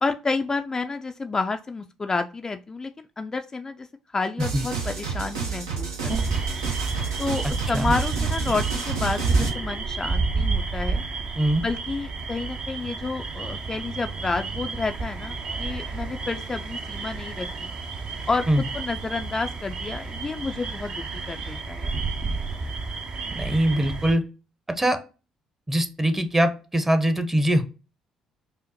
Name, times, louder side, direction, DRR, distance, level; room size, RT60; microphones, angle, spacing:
voice 1, 0.0-3.9 4.1-6.4 7.2-11.0 11.6-17.7 18.3-22.0, left 3 dB, 25° left, 7 dB, 0.3 m, -30 dB
sound 1, 4.4-9.5, right 5 dB, 80° right, 0.8 m, -30 dB
sound 2, 6.1-24.1, right 4 dB, 45° right, 0.6 m, -30 dB
voice 2, 23.3-24.2 24.8-25.0 25.7-27.6, right 1 dB, 15° right, 8 dB, 0.7 m, -22 dB
5.2 x 2.0 x 2.8 m, 0.32 s
hypercardioid pair, 50°, 2 cm